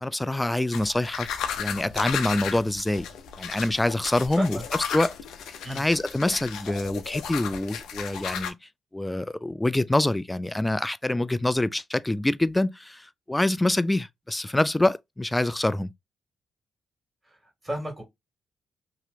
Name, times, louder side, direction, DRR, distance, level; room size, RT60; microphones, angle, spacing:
voice 1, 0.0-3.1 3.4-4.6 4.9-5.1 5.7-8.5 8.9-15.9, left 1 dB, 15° left, 0.3 m, -25 dB
sound 1, 0.7-8.5, left 8 dB, 75° left, 0.5 m, -34 dB
voice 2, 17.2-18.0, right 1 dB, 20° right, 2.2 m, -33 dB
2.9 x 2.9 x 2.6 m
hypercardioid pair, 45°, 0 cm